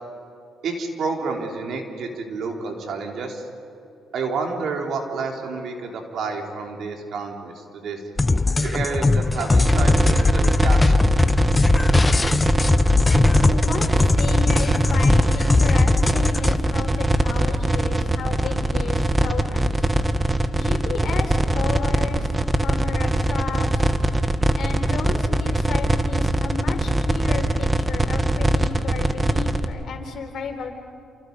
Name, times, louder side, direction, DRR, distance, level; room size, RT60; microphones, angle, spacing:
voice 1, 0.6-3.4 4.1-8.0 8.6-11.2 20.0-20.1, right 4 dB, 70° right, 2 dB, 3.3 m, -29 dB
sound 1, 8.2-16.6, left 3 dB, 20° left, 0.8 m, -19 dB
sound 2, 9.6-29.6, right 1 dB, 15° right, 1.4 m, -21 dB
voice 2, 13.4-19.9 20.5-23.9 24.6-30.7, left 5 dB, 60° left, 3 dB, 4.2 m, -33 dB
29.0 x 28.0 x 5.3 m, 2.7 s
cardioid pair, 90°, 0 cm